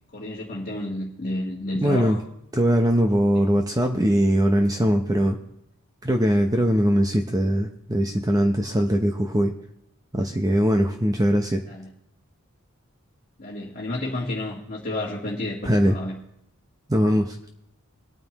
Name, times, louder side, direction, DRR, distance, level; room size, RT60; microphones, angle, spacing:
voice 1, 0.1-2.2 11.7-11.9 13.4-16.2, left 1 dB, 40° left, -4 dB, 1.7 m, -31 dB
voice 2, 1.8-2.2 2.5-5.4 6.0-9.5 10.1-11.6 15.6-16.0 16.9-17.4, equal, 15° right, 3 dB, 0.8 m, -21 dB
22.0 x 9.1 x 3.1 m, 0.78 s
head